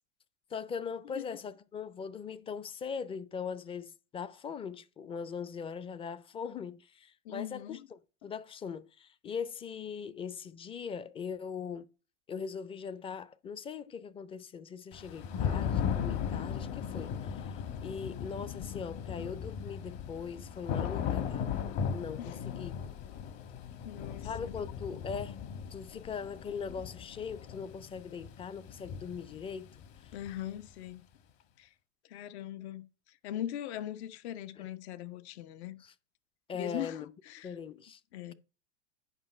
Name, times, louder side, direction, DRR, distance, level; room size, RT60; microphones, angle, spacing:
voice 1, 0.5-11.9 12.3-21.5 21.9-22.8 24.2-25.4 25.7-29.8 30.0-30.1 34.6-34.7 35.8-35.9 36.5-37.1 37.4-38.0, left 6 dB, 15° left, 0.4 m, -40 dB
voice 2, 7.2-7.9 22.2-22.4 23.8-24.6 30.1-31.0 31.6-31.7 32.1-35.8 36.5-37.5 38.1-38.3, left 12 dB, 60° left, 0.9 m, -41 dB
Thunder / Rain, 14.9-30.7, left 8 dB, 45° left, 1.5 m, -37 dB
8.9 x 5.5 x 4.3 m
hypercardioid pair, 105°, 36 cm